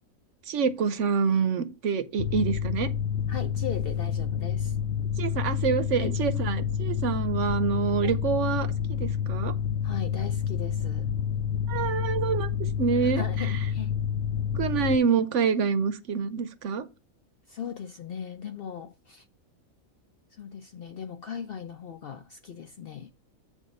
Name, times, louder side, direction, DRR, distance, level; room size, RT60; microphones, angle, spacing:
voice 1, 0.5-2.9 5.2-9.5 11.7-12.5 12.8-13.2 14.5-16.9, right 6 dB, 65° right, 1.0 m, -26 dB
Mechanical fan, 2.2-15.0, left 8 dB, 75° left, 1.0 m, -29 dB
voice 2, 3.3-4.8 6.0-6.2 8.0-8.2 9.8-11.1 11.8-12.0 13.0-13.9 17.5-19.2 20.3-23.1, left 8 dB, 60° left, 0.6 m, -38 dB
8.1 x 3.6 x 5.2 m
omnidirectional pair, 1.4 m